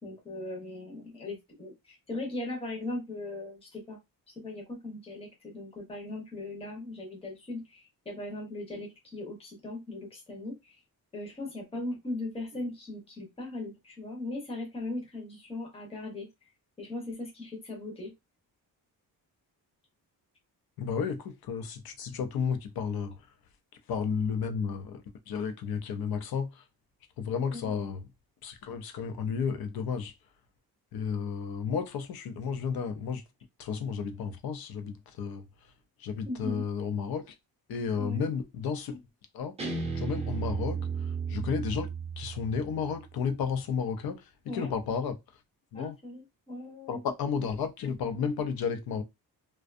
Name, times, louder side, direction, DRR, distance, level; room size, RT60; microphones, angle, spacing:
voice 1, 0.0-4.0 4.3-10.8 11.1-16.3 16.8-18.1 27.4-27.7 36.3-36.6 38.0-38.3 44.5-44.7 45.7-47.0, left 2 dB, 15° left, 0.7 m, -39 dB
voice 2, 20.8-23.2 23.9-26.6 27.2-28.0 28.4-30.1 30.9-33.2 33.6-35.4 36.0-37.3 37.7-39.0 39.3-39.5 39.9-41.9 42.2-45.2 45.7-46.0 46.9-49.0, left 6 dB, 75° left, 0.6 m, -32 dB
Guitar, 39.6-42.8, right 5 dB, 15° right, 0.6 m, -34 dB
2.5 x 2.2 x 2.4 m
wide cardioid pair, 160°, 37 cm